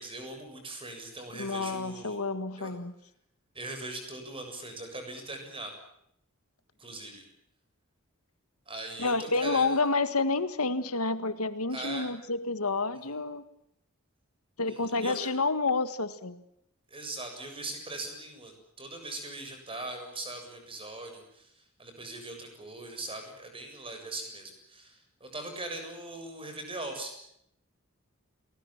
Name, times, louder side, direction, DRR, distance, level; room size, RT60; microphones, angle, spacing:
voice 1, 0.0-2.2 2.6-2.7 3.5-5.7 6.8-7.2 8.7-9.8 11.7-12.1 12.9-13.2 14.7-15.3 16.9-27.2, right 2 dB, 25° right, 5 dB, 7.4 m, -40 dB
voice 2, 1.3-2.9 9.0-13.4 14.6-16.4, left 3 dB, 85° left, 12 dB, 1.9 m, -29 dB
30.0 x 20.5 x 7.4 m, 0.74 s
head